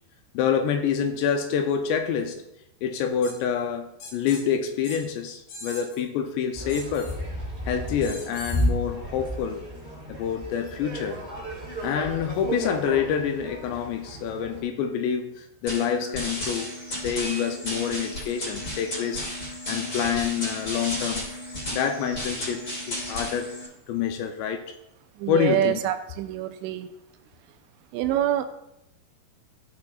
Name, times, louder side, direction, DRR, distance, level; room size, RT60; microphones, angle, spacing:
voice 1, 0.3-2.4 2.8-7.1 7.7-9.6 10.1-11.2 11.8-16.7 17.0-19.3 19.7-21.2 21.7-23.5 23.9-24.6 25.3-25.7, left 7 dB, 80° left, 6 dB, 2.7 m, -27 dB
sound 1, 3.2-3.4 4.0-4.4 4.8-5.0 5.5-6.0 6.7-7.2 8.0-8.7, left 1 dB, 60° left, 3.7 m, -40 dB
sound 2, 6.5-14.6, equal, 10° right, 2.3 m, -33 dB
sound 3, 15.7-23.7, left 1 dB, 25° left, 2.2 m, -33 dB
voice 2, 25.1-26.9 27.5-27.6 27.9-28.5, right 12 dB, 85° right, 8 dB, 2.8 m, -26 dB
15.0 x 6.1 x 2.5 m, 0.82 s
omnidirectional pair, 5.2 m